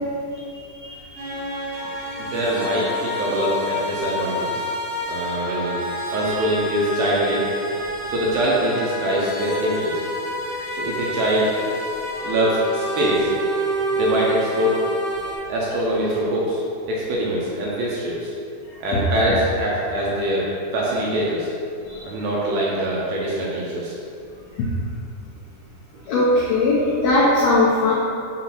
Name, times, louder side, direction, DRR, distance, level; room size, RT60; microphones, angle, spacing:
voice 1, 0.6-1.2 6.3-6.4 21.9-22.0 26.1-27.9, left 2 dB, 80° left, -7 dB, 2.1 m, -19 dB
sound 1, 1.2-15.3, equal, 55° right, 2.7 m, -28 dB
voice 2, 2.2-4.7 5.1-7.4 8.1-10.0 10.7-11.5 12.2-13.3 13.9-14.8 15.5-18.3 18.8-20.5 20.7-21.5 22.0-23.9, right 1 dB, 75° right, -5 dB, 2.6 m, -23 dB
7.1 x 3.9 x 6.0 m, 2.4 s
omnidirectional pair, 5.7 m